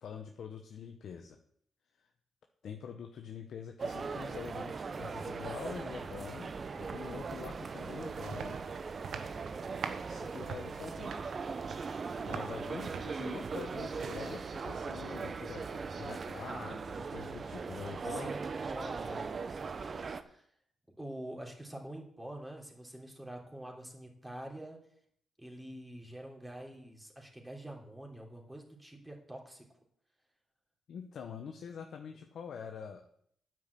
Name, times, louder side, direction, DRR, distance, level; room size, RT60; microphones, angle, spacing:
voice 1, 0.0-1.4 1.9-2.1 2.6-6.5 6.8-8.6 10.0-11.2 12.2-18.3 30.9-33.0, left 7 dB, 70° left, 5 dB, 0.9 m, -45 dB
sound 1, 3.8-20.2, right 4 dB, 45° right, 0.9 m, -39 dB
sound 2, 7.3-15.1, right 6 dB, 70° right, 1.0 m, -46 dB
voice 2, 18.1-19.2 20.1-20.5 21.0-24.8 25.4-29.7, right 1 dB, 10° right, 0 dB, 3.6 m, -46 dB
9.5 x 6.0 x 8.4 m, 0.67 s
supercardioid pair, 60°, 0 cm